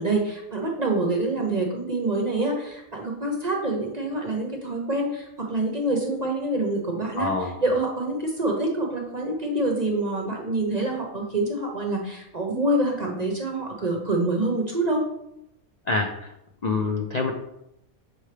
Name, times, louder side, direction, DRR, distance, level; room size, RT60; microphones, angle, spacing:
voice 1, 0.0-15.1, right 2 dB, 35° right, 1 dB, 0.7 m, -26 dB
voice 2, 7.2-7.6 15.9-16.3 16.6-17.3, left 3 dB, 70° left, 3 dB, 0.4 m, -26 dB
6.4 x 4.5 x 3.3 m, 0.82 s
omnidirectional pair, 1.5 m